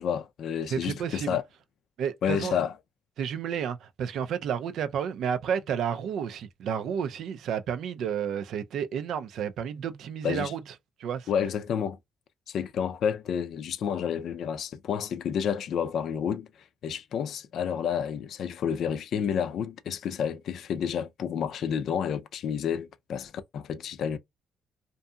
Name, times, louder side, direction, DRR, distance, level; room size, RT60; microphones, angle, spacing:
voice 1, 0.0-1.4 2.2-2.7 10.2-10.5 11.3-12.0 12.5-16.5 16.8-24.2, left 8 dB, 70° left, 0.4 m, -30 dB
voice 2, 0.7-1.4 2.0-2.6 3.2-10.7 11.0-11.3, right 8 dB, 75° right, 0.4 m, -31 dB
2.6 x 2.6 x 2.2 m
cardioid pair, 90°, 0 cm